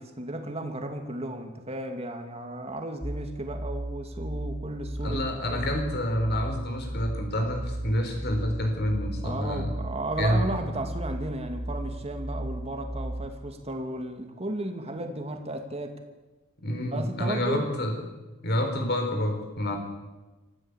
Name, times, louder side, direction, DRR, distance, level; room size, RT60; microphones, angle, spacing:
voice 1, 0.0-5.7 9.2-16.0 16.9-17.7, right 1 dB, 30° right, 5 dB, 2.6 m, -34 dB
sound 1, 3.0-13.3, right 1 dB, ahead, 1.2 m, -35 dB
voice 2, 5.0-9.7 10.2-10.4 16.6-17.9 18.4-19.8, left 1 dB, 50° left, 4 dB, 4.5 m, -28 dB
25.5 x 15.0 x 8.3 m, 1.2 s
head